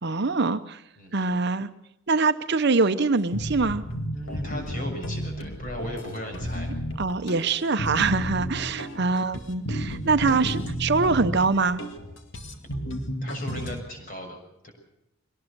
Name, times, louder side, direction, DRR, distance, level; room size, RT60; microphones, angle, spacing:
voice 1, 0.0-0.8 1.1-1.7 2.1-3.8 7.0-11.8, right 4 dB, 50° right, 10 dB, 0.8 m, -24 dB
voice 2, 1.0-1.3 4.1-6.7 13.2-14.4 14.6-14.7, left 1 dB, 40° left, 2 dB, 6.5 m, -36 dB
sound 1, 3.3-13.8, equal, 60° left, 2.2 m, -33 dB
23.0 x 19.0 x 6.8 m, 0.81 s
head